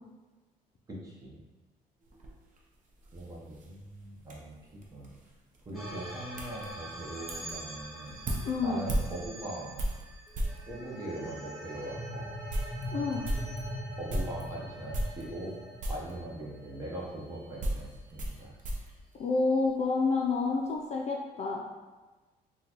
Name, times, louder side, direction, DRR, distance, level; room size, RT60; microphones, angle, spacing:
voice 1, 0.9-1.4 3.1-5.1 5.7-8.2 8.6-9.9 10.7-12.3 14.0-15.5 15.9-18.5, right 1 dB, 20° right, -4 dB, 0.9 m, -41 dB
sound 1, 2.0-10.7 11.4-11.5 11.9-12.0 12.3-14.5 14.9-15.5 15.8-16.2 17.0-19.9 20.2-20.8, right 1 dB, 50° right, 0.7 m, -37 dB
sound 2, 5.7-18.2, equal, ahead, 1.5 m, -43 dB
voice 2, 8.4-8.8 12.9-13.2 19.2-21.6, left 4 dB, 40° left, 0 dB, 0.4 m, -28 dB
3.7 x 2.3 x 2.9 m, 1.2 s
cardioid pair, 110°, 17 cm